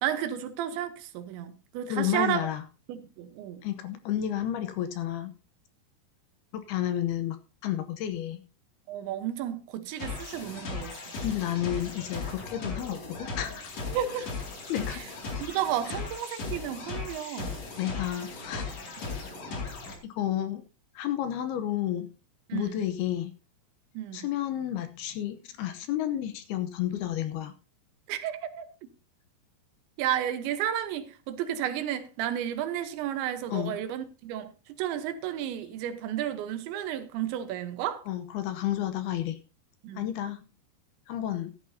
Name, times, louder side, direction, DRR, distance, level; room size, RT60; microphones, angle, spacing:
voice 1, 0.0-2.5 2.9-3.6 8.9-11.1 13.9-14.4 14.9-15.1 15.4-17.6 22.5-22.7 23.9-24.3 28.1-28.7 30.0-38.0 39.8-40.1, right 11 dB, 85° right, 3.4 m, -32 dB
voice 2, 1.9-2.6 3.6-5.3 6.5-7.4 7.6-8.4 11.2-13.6 14.7-15.1 15.9-16.0 17.8-18.7 20.0-20.6 21.0-22.1 22.5-23.3 24.1-27.5 33.5-33.7 38.1-39.4 40.0-40.4 41.1-41.5, left 11 dB, 75° left, 2.5 m, -31 dB
sound 1, 10.0-20.0, left 4 dB, 45° left, 3.1 m, -37 dB
15.0 x 11.5 x 2.8 m
omnidirectional pair, 5.1 m